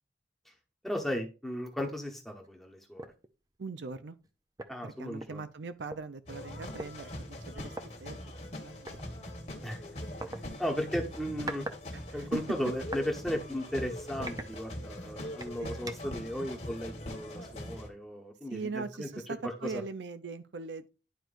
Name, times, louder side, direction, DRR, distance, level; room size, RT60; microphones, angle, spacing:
voice 1, 0.8-3.1 4.7-5.4 9.6-9.8 10.6-11.7 12.1-19.1, equal, ahead, 1.2 m, -35 dB
sound 1, 1.8-2.0 2.4-2.6 3.0-3.3 4.2-4.3 4.6-6.0 6.8-6.9 7.7-7.9 8.9-9.0 10.2-10.4 11.1-11.8 12.1-13.1 13.6-13.7 14.2-15.0 15.4-16.2, right 2 dB, 20° right, 0.6 m, -42 dB
voice 2, 3.6-4.2 4.8-8.2 8.6-9.1 11.9-12.4 15.6-15.8 18.5-20.9, right 4 dB, 80° right, 0.5 m, -41 dB
sound 2, 6.3-17.9, left 1 dB, 35° left, 1.6 m, -42 dB
11.5 x 4.6 x 2.5 m
head